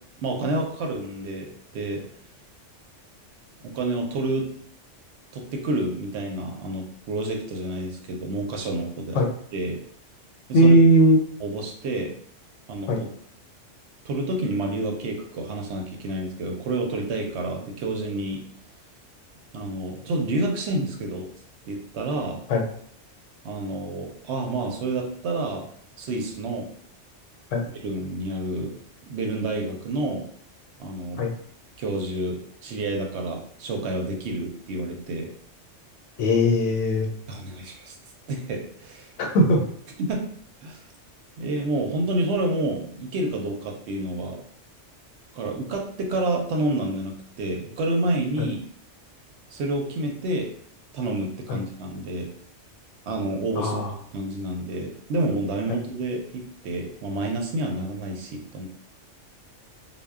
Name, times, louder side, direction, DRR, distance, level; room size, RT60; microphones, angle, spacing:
voice 1, 0.2-2.0 3.6-4.5 5.3-9.2 9.5-9.8 10.5-10.7 11.4-12.1 12.7-12.9 14.0-18.4 19.5-21.3 21.6-22.4 23.4-25.7 26.0-26.7 27.7-28.7 29.1-30.2 30.8-31.3 31.8-35.3 37.3-38.0 38.3-39.1 40.0-40.3 40.6-40.8 41.4-44.4 45.3-48.6 49.5-50.5 50.9-52.3 53.1-53.8 54.1-58.7, right 2 dB, 70° right, 1 dB, 0.8 m, -29 dB
voice 2, 10.5-11.2 12.9-13.0 22.5-22.6 27.5-27.6 31.2-31.3 36.2-37.1 39.2-39.6 48.4-48.5 51.5-51.6 53.6-53.9, equal, 80° left, 2 dB, 0.9 m, -18 dB
2.1 x 2.0 x 3.4 m, 0.63 s
omnidirectional pair, 1.3 m